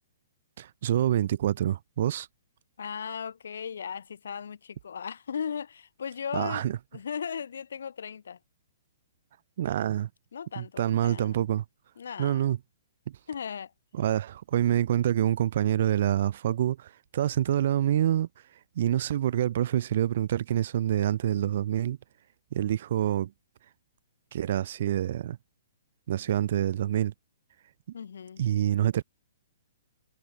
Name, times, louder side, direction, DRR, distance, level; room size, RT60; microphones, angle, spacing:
voice 1, 0.6-2.3 6.3-6.8 9.6-10.1 10.6-11.6 12.2-12.6 13.1-13.2 14.0-18.3 18.8-22.0 22.5-23.3 24.3-25.4 26.1-27.1 28.4-29.0, right 11 dB, 50° right, 0.7 m, -26 dB
voice 2, 2.8-6.7 6.9-8.4 10.3-11.5 12.0-12.6 13.3-13.7 27.9-28.4, left 7 dB, 80° left, 0.9 m, -37 dB
hypercardioid pair, 165°, 0 cm